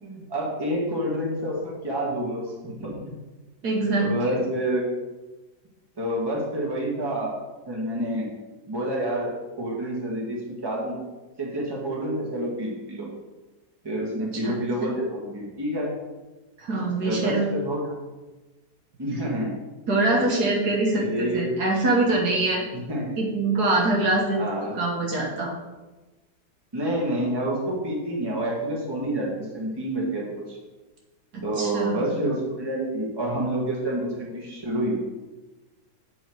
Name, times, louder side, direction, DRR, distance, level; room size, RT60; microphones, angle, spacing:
voice 1, 0.0-3.0 4.0-4.8 6.0-7.3 7.7-8.3 8.7-9.3 9.6-11.0 11.4-13.1 13.8-15.9 17.0-17.9 19.0-19.5 20.9-21.5 22.7-23.1 24.3-24.7 26.7-30.6 31.4-35.0, right 1 dB, 15° right, -3 dB, 1.5 m, -28 dB
voice 2, 3.6-4.4 14.4-14.6 16.6-17.5 19.9-22.6 23.2-24.4 24.7-25.5 31.3-32.0, right 2 dB, 70° right, -2 dB, 1.9 m, -24 dB
8.3 x 4.6 x 4.6 m, 1.1 s
omnidirectional pair, 1.8 m